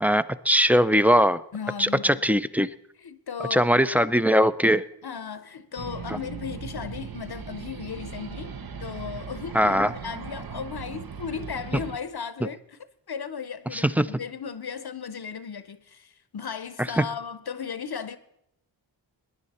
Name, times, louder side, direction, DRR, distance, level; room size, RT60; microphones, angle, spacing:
voice 1, 0.0-1.4 1.8-2.7 3.5-4.8 6.1-6.2 9.5-9.9 13.7-14.0 17.0-17.1, equal, 5° right, 0.4 m, -20 dB
voice 2, 1.5-2.2 3.0-4.1 5.0-12.8 13.1-18.2, left 6 dB, 55° left, 0.7 m, -36 dB
sound 1, 5.8-12.0, right 6 dB, 50° right, 0.8 m, -38 dB
19.5 x 10.0 x 4.2 m
wide cardioid pair, 60°, 45 cm